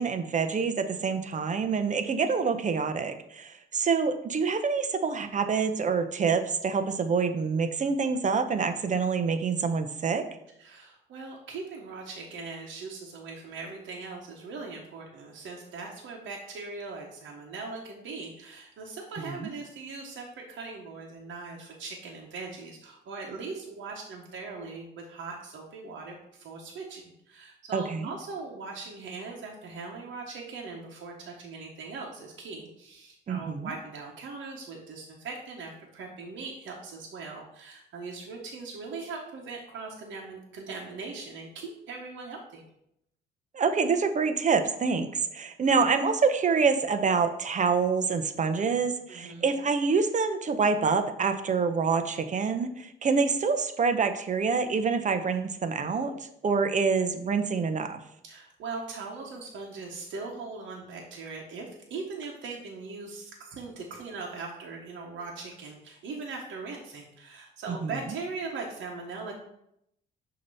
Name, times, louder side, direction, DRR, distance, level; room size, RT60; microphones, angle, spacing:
voice 1, 0.0-10.3 19.2-19.5 27.7-28.1 33.3-33.7 43.5-56.1 56.4-58.0 67.7-67.9, right 5 dB, 40° right, 8 dB, 0.7 m, -26 dB
voice 2, 10.6-42.6 49.1-49.5 58.2-69.3, right 4 dB, 70° right, -1 dB, 1.1 m, -40 dB
6.5 x 2.9 x 5.4 m, 0.77 s
cardioid pair, 90°, 20 cm